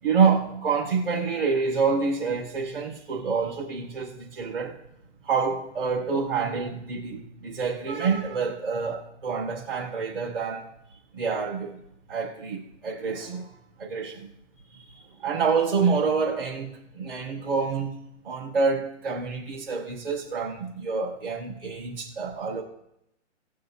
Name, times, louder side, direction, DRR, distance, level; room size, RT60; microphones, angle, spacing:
voice 1, 0.0-4.8 5.2-10.7 11.1-11.8 12.1-13.5 13.8-14.3 14.7-18.0 18.2-22.6, right 5 dB, 45° right, 4.2 m, -27 dB
19.5 x 6.5 x 2.7 m
hypercardioid pair, 175°, 37 cm